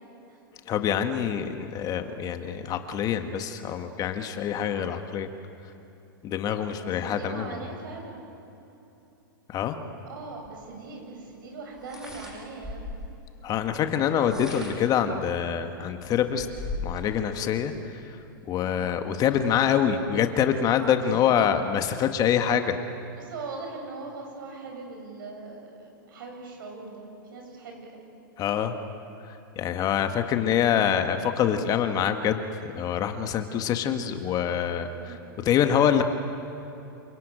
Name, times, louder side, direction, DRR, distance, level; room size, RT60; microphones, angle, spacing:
voice 1, 0.7-5.3 6.2-7.6 9.5-9.8 13.4-16.5 16.8-18.2 18.5-22.8 28.4-28.8 29.2-32.4 32.8-35.2 35.4-36.0, left 9 dB, 30° left, 7 dB, 1.6 m, -25 dB
voice 2, 6.8-8.3 10.1-12.9 18.6-18.9 21.0-21.2 23.2-28.0 34.9-35.3, right 3 dB, 70° right, 2 dB, 7.5 m, -41 dB
sound 1, 10.4-10.5 11.8-13.1 14.1-15.0 15.6-15.7 16.0-17.1, left 3 dB, 5° right, 7.4 m, -37 dB
28.0 x 18.0 x 8.9 m, 2.9 s
hypercardioid pair, 115°, 12 cm